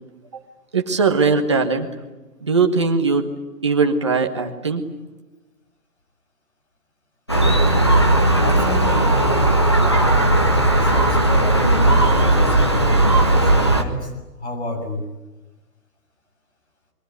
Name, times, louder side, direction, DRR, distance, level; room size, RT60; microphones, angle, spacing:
voice 1, 0.7-1.9 2.4-3.3 3.6-4.8, right 4 dB, 20° right, 4 dB, 1.3 m, -19 dB
Gull seagull, 7.3-13.8, right 1 dB, 20° left, 0.8 m, -16 dB
voice 2, 8.4-15.0, left 1 dB, 45° left, 5 dB, 6.8 m, -30 dB
28.5 x 22.5 x 9.3 m, 1.1 s
hypercardioid pair, 180°, 47 cm